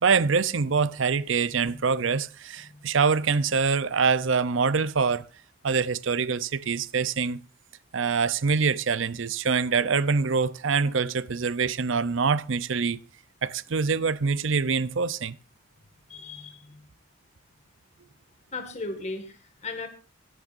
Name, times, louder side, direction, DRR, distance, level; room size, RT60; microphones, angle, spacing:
voice 1, 0.0-5.3 5.6-7.4 7.9-13.0 13.4-15.4, right 5 dB, 65° right, 0.7 m, -25 dB
voice 2, 2.6-2.9 16.1-16.8 18.5-19.9, left 3 dB, 35° left, 1.9 m, -37 dB
22.0 x 11.0 x 2.6 m
head